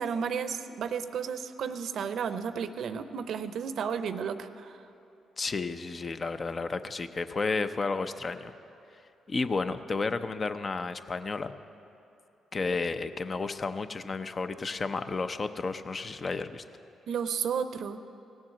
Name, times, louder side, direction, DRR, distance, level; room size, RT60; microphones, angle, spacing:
voice 1, 0.0-4.8 17.1-18.0, right 7 dB, 65° right, 12 dB, 0.6 m, -33 dB
voice 2, 5.4-8.5 9.3-11.5 12.5-16.6, left 4 dB, 40° left, 10 dB, 0.6 m, -32 dB
17.5 x 7.3 x 7.4 m, 2.8 s
hypercardioid pair, 50°, 0 cm